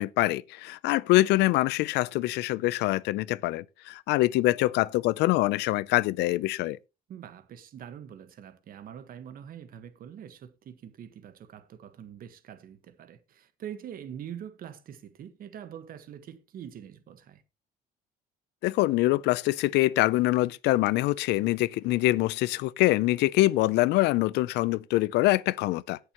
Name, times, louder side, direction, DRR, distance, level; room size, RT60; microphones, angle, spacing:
voice 1, 0.0-6.8 18.6-26.0, left 18 dB, 85° left, 0.5 m, -24 dB
voice 2, 7.1-17.4, right 9 dB, 60° right, 1.5 m, -44 dB
17.5 x 6.7 x 3.0 m
cardioid pair, 110°, 17 cm